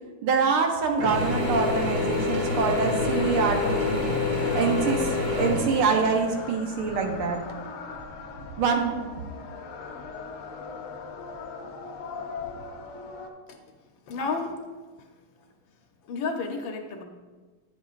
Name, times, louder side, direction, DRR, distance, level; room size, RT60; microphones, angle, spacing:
voice 1, 0.2-4.0 4.6-7.4 8.6-9.1, right 5 dB, 80° right, 3 dB, 1.8 m, -25 dB
Mechanisms / Drill, 1.0-6.5, left 3 dB, 45° right, 2.6 m, -27 dB
sound 1, 1.7-13.3, left 4 dB, 85° left, 1.7 m, -39 dB
voice 2, 14.1-14.6 16.1-17.0, left 4 dB, 70° left, 4 dB, 1.4 m, -31 dB
9.4 x 8.2 x 2.4 m, 1.3 s
omnidirectional pair, 2.4 m